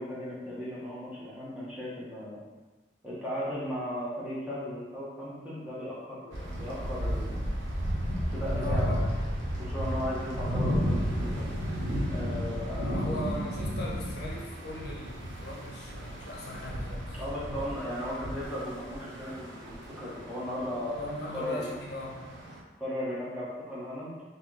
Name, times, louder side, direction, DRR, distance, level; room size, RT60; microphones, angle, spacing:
voice 1, 0.0-2.4 3.0-7.4 8.3-9.1 9.6-11.4 12.1-13.3 17.1-21.0 21.3-21.7 22.8-24.2, left 1 dB, 5° right, -8 dB, 0.8 m, -36 dB
sound 1, 6.3-22.6, equal, 80° right, 0.7 m, -33 dB
voice 2, 8.6-9.1 12.8-17.2 21.0-22.3, left 1 dB, 55° left, -4 dB, 0.7 m, -39 dB
3.2 x 2.8 x 3.6 m, 1.2 s
head